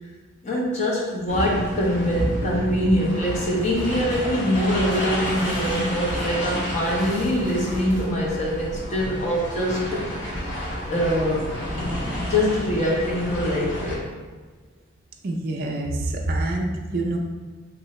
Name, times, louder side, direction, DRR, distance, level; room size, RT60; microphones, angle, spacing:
voice 1, 0.4-10.0 10.9-11.5 12.2-14.1, equal, 35° left, -3 dB, 0.7 m, -24 dB
sound 1, 1.3-13.9, equal, 65° left, 1.0 m, -30 dB
sound 2, 3.2-8.0, equal, 20° left, 1.1 m, -36 dB
voice 2, 15.2-17.2, right 2 dB, 45° right, 1 dB, 0.3 m, -26 dB
3.7 x 2.7 x 3.1 m, 1.4 s
head